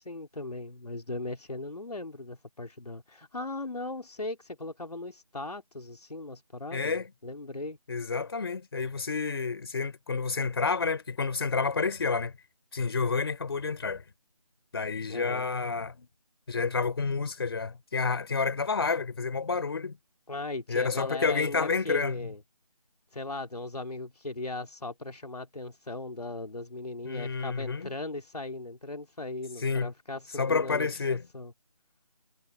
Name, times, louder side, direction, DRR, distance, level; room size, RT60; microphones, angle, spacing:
voice 1, 0.0-7.8 15.1-15.5 20.3-22.4 23.1-31.5, left 2 dB, 75° left, 3.0 m, -38 dB
voice 2, 6.7-7.1 7.9-12.3 12.7-14.0 14.7-16.1 16.5-20.0 20.7-22.3 27.0-27.9 29.6-29.9 30.4-31.2, left 4 dB, 40° left, 4.3 m, -29 dB
figure-of-eight pair, 165°, 20 cm